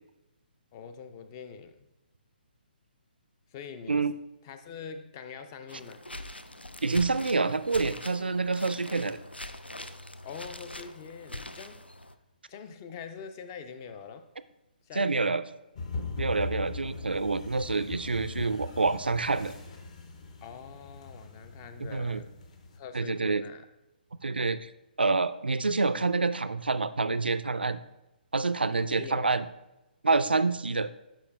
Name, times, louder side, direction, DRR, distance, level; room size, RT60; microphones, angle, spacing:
voice 1, 0.7-1.9 3.5-4.1 4.4-6.0 10.2-11.8 12.5-14.3 14.8-15.4 20.4-22.3 22.7-23.6 28.9-29.4, left 6 dB, 25° left, 10 dB, 0.4 m, -44 dB
sound 1, 5.7-12.1, left 1 dB, 85° left, 0.4 m, -42 dB
voice 2, 6.8-9.2 15.0-15.4 16.2-19.5 21.8-22.2 22.9-23.4 24.2-24.7 25.0-27.8 28.3-29.5 30.0-30.9, right 3 dB, 75° right, 13 dB, 0.4 m, -27 dB
sound 2, 15.8-22.8, left 4 dB, 40° left, 0.8 m, -40 dB
11.0 x 4.9 x 2.3 m, 0.96 s
figure-of-eight pair, 135°, 5 cm